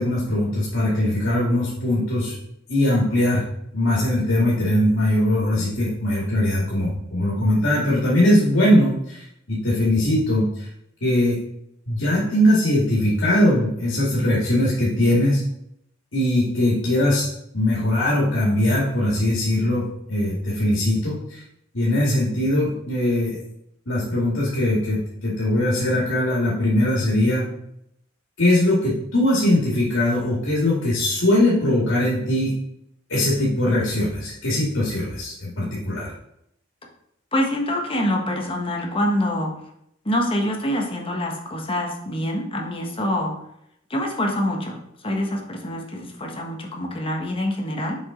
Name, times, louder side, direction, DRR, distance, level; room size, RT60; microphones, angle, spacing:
voice 1, 0.0-2.3 2.7-3.4 3.7-10.4 11.0-11.4 11.9-15.4 16.1-17.2 17.5-21.4 21.7-23.4 23.9-27.5 28.4-32.5 33.1-36.1, left 1 dB, 80° left, -6 dB, 2.1 m, -21 dB
voice 2, 37.3-39.5 40.0-43.3 43.9-44.8 45.0-48.0, left 1 dB, 30° left, 1 dB, 1.2 m, -25 dB
7.2 x 4.9 x 3.8 m, 0.76 s
head